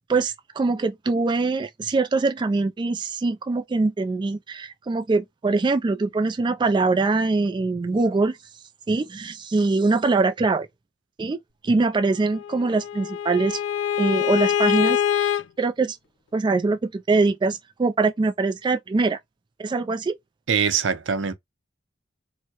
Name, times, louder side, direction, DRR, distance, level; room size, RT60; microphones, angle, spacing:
voice 1, 0.1-8.4 8.9-10.7 11.2-11.4 11.6-13.6 14.0-16.0 16.3-19.2 19.6-20.2, right 3 dB, 25° right, 0.3 m, -23 dB
Bowed string instrument, 12.3-15.4, left 9 dB, 80° left, 0.4 m, -24 dB
voice 2, 20.5-21.3, right 6 dB, 80° right, 0.6 m, -23 dB
4.4 x 2.1 x 2.8 m
head